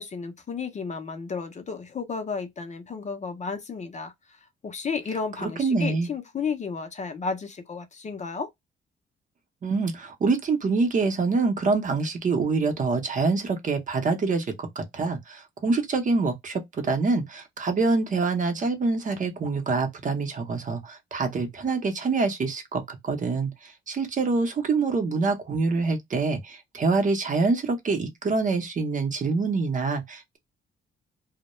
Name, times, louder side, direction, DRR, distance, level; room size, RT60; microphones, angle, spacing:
voice 1, 0.0-8.5, left 5 dB, 35° left, 0.5 m, -33 dB
voice 2, 5.4-6.1 9.6-30.4, right 4 dB, 40° right, 0.7 m, -26 dB
2.2 x 2.1 x 2.9 m
cardioid pair, 110°, 21 cm